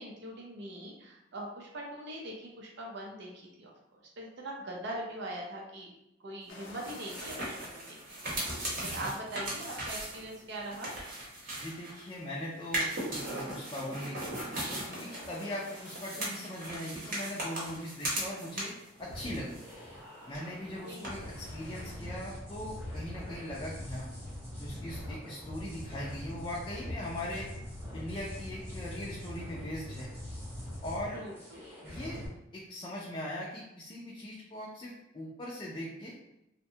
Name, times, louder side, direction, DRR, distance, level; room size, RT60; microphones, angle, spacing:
voice 1, 0.0-3.3 3.6-5.9 6.2-8.2 8.9-10.9 20.8-21.1 31.1-31.6, right 1 dB, 65° right, -1 dB, 0.5 m, -42 dB
sound 1, 6.5-22.0, left 2 dB, 80° left, 0.5 m, -56 dB
sound 2, 6.6-12.1 12.6-18.9 19.2-20.0 20.3-20.4 21.0-21.1, right 1 dB, 45° right, 0.9 m, -38 dB
voice 2, 11.6-14.4 14.9-18.7 19.0-19.6 20.3-24.1 24.6-27.5 27.9-30.1 30.8-31.2 31.8-32.2 32.5-36.2, left 1 dB, 25° left, -5 dB, 0.4 m, -40 dB
sound 3, 19.0-32.3, left 1 dB, 10° right, 0.8 m, -43 dB
2.6 x 2.1 x 2.7 m, 0.87 s
head